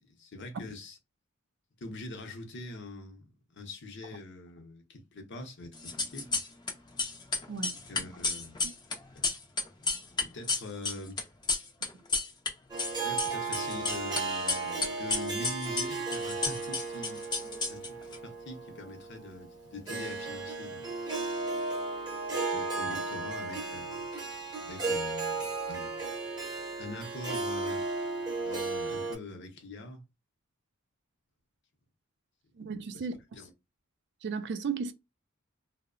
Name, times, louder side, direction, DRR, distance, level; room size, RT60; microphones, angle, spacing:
voice 1, 0.1-1.0 1.8-6.4 7.7-8.6 9.1-9.2 10.3-11.2 13.0-17.2 17.7-20.9 22.3-24.1 24.6-26.0 26.8-27.9 28.3-30.0 32.9-33.1 33.3-33.5, left 2 dB, 60° left, 0.7 m, -44 dB
sound 1, 5.8-6.7 7.0-12.5 12.8-14.2 14.5-18.2, left 3 dB, 20° left, 0.5 m, -31 dB
Harp, 12.7-29.1, right 3 dB, 20° right, 0.8 m, -35 dB
voice 2, 32.6-33.1 34.2-34.9, right 5 dB, 55° right, 0.4 m, -34 dB
2.7 x 2.0 x 2.4 m
head